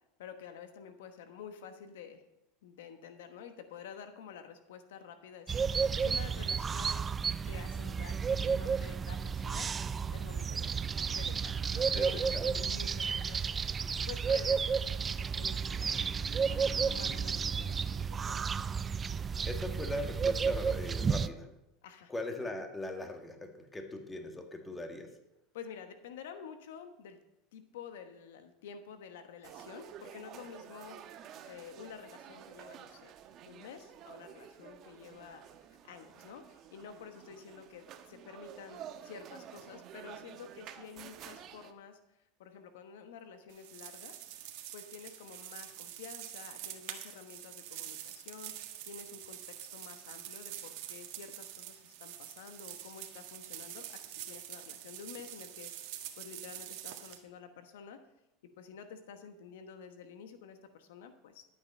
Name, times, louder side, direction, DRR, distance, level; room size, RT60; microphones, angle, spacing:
voice 1, 0.2-2.2 2.6-7.0 7.5-9.7 10.1-13.5 13.8-18.4 21.8-22.1 25.5-27.2 27.5-33.1 33.5-42.0 42.4-44.1 44.7-48.5 48.8-58.0 58.6-61.4, left 7 dB, 85° left, 8 dB, 1.1 m, -50 dB
sound 1, 5.5-21.3, right 6 dB, 25° right, 0.4 m, -32 dB
voice 2, 11.9-12.7 19.4-21.5 22.1-25.1, left 2 dB, 15° left, 5 dB, 1.8 m, -40 dB
sound 2, 29.4-41.7, right 9 dB, 50° right, 1.0 m, -51 dB
sound 3, 43.5-57.2, right 12 dB, 70° right, 1.5 m, -46 dB
12.0 x 8.6 x 5.4 m, 0.88 s
supercardioid pair, 110°, 0 cm